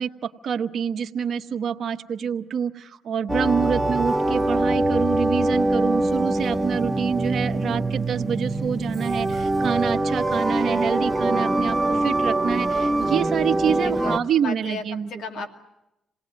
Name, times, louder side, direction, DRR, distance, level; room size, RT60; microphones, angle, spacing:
voice 1, 0.0-15.1, right 7 dB, 60° right, 5 dB, 1.1 m, -27 dB
sound 1, 3.3-14.2, right 2 dB, 5° right, 1.1 m, -23 dB
voice 2, 6.3-6.9 13.7-15.5, left 4 dB, 75° left, 7 dB, 2.1 m, -36 dB
27.5 x 18.5 x 9.3 m, 0.90 s
cardioid pair, 90°, 0 cm